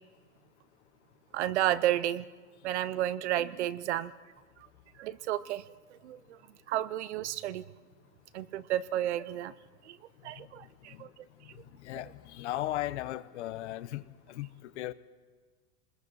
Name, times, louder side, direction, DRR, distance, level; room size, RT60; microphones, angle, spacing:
voice 1, 1.3-2.2 2.6-4.1 5.0-5.6 5.9-6.4 6.7-7.6 8.3-9.5 9.9-10.0 10.2-11.1, right 12 dB, 45° right, 17 dB, 0.6 m, -31 dB
voice 2, 11.8-14.0 14.3-14.9, left 15 dB, 45° left, 15 dB, 0.8 m, -36 dB
28.0 x 21.0 x 4.7 m, 1.4 s
supercardioid pair, 175°, 47 cm